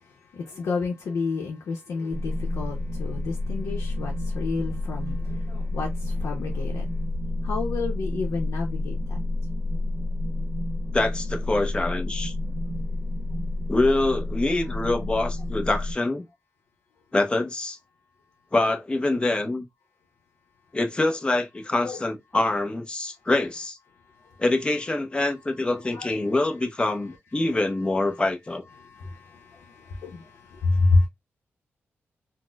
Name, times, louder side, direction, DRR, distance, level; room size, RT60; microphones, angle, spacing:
voice 1, 0.3-6.9 7.4-9.2 21.8-22.0 25.9-26.1 28.8-31.1, left 3 dB, 90° left, 0.7 m, -29 dB
sound 1, 2.1-15.9, left 2 dB, 90° right, 0.7 m, -29 dB
voice 2, 10.9-12.3 13.7-16.3 17.1-17.8 18.5-19.7 20.7-23.8 24.4-28.6, left 2 dB, 20° left, 0.6 m, -25 dB
4.1 x 2.0 x 2.2 m
wide cardioid pair, 100°, 5 cm